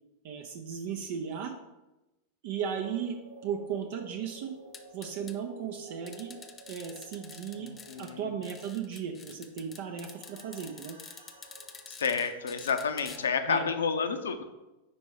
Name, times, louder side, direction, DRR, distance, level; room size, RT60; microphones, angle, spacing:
voice 1, 0.2-1.5 2.4-3.2 3.4-4.5 4.9-6.3 6.7-7.7 8.0-11.0 13.5-13.7, right 7 dB, 50° right, 3 dB, 0.5 m, -36 dB
sound 1, 2.7-13.3, right 3 dB, 85° right, 1.0 m, -52 dB
sound 2, 4.7-5.3 6.1-8.1 8.4-13.2, left 5 dB, 20° left, 0.6 m, -48 dB
voice 2, 7.6-8.3 11.9-14.4, left 6 dB, 65° left, 8 dB, 0.6 m, -30 dB
5.3 x 4.4 x 4.6 m, 1.0 s
figure-of-eight pair, 90°, 0 cm